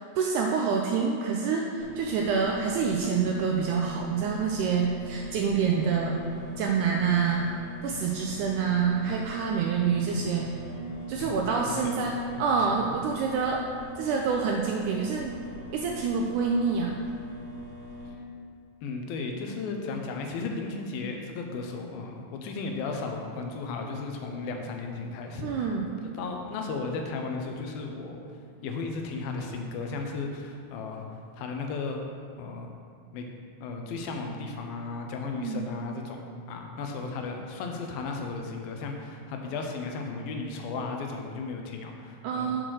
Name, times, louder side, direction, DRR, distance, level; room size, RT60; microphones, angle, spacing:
voice 1, 0.2-6.2 6.6-7.5 7.8-10.5 11.1-13.6 14.0-15.3 15.7-17.0 25.4-26.0 35.4-35.6 42.2-42.6, right 5 dB, 85° right, 0 dB, 1.8 m, -27 dB
sound 1, 1.8-18.1, equal, 50° right, 1.7 m, -43 dB
voice 2, 11.2-12.4 12.8-12.9 18.8-25.7 26.0-28.2 28.6-31.1 31.3-32.0 32.4-32.7 33.1-33.3 33.6-42.5, left 4 dB, 90° left, 3 dB, 2.7 m, -35 dB
6.7 x 5.9 x 6.2 m, 2.2 s
omnidirectional pair, 4.1 m